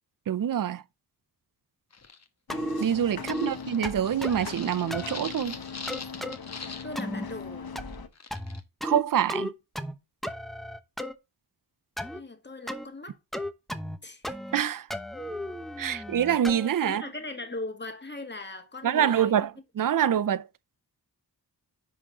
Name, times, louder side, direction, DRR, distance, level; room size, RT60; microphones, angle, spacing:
voice 1, 0.3-0.8 2.8-5.6 8.8-9.5 14.5-14.9 15.8-17.0 18.8-19.5 19.8-20.4, right 9 dB, 55° right, 0.6 m, -25 dB
sound 1, 1.9-2.3 2.7-7.0 7.3-7.4 7.9-8.6, left 4 dB, 40° left, 1.2 m, -43 dB
sound 2, 2.5-8.1, left 6 dB, 65° left, 1.1 m, -40 dB
sound 3, 2.5-2.9 3.3-3.5 3.8-4.5 4.9-5.2 5.9-6.4 7.0-7.3 7.8-8.1 8.3-9.0 9.3-9.9 10.2-11.1 12.0-12.2 12.7-12.9 13.3-14.0 14.2-14.6 14.9-16.7, equal, ahead, 0.9 m, -34 dB
voice 2, 3.2-3.5 6.8-7.7 12.1-13.2 14.0-14.4 15.9-16.0 16.8-19.5, left 2 dB, 25° left, 1.8 m, -40 dB
10.0 x 3.8 x 4.9 m
cardioid pair, 55°, 40 cm